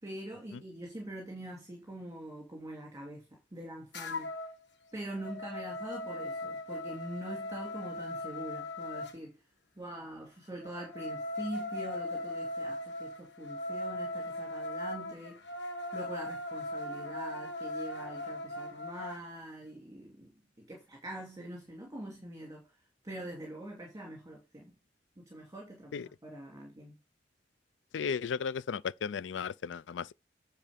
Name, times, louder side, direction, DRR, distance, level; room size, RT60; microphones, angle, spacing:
voice 1, 0.0-4.3 4.9-9.4 9.8-15.4 15.9-22.8 23.0-24.7 25.2-27.0, right 1 dB, 20° right, 2.6 m, -44 dB
sound 1, 3.9-4.6 5.0-9.2 10.6-19.2, left 1 dB, 70° left, 1.3 m, -39 dB
voice 2, 27.9-30.1, left 6 dB, 90° left, 0.4 m, -35 dB
9.8 x 4.2 x 5.1 m
head